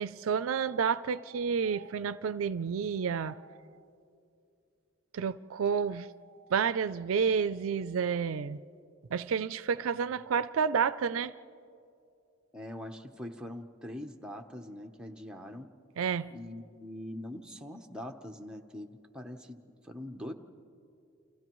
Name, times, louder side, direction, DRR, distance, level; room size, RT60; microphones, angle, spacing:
voice 1, 0.0-3.6 5.1-6.1 6.5-8.6 9.1-11.3 16.0-16.3, right 6 dB, 70° right, 14 dB, 0.4 m, -30 dB
voice 2, 12.5-15.7 16.3-19.6 19.8-20.3, left 1 dB, 5° right, 2 dB, 0.9 m, -43 dB
29.5 x 28.5 x 3.1 m, 2.6 s
head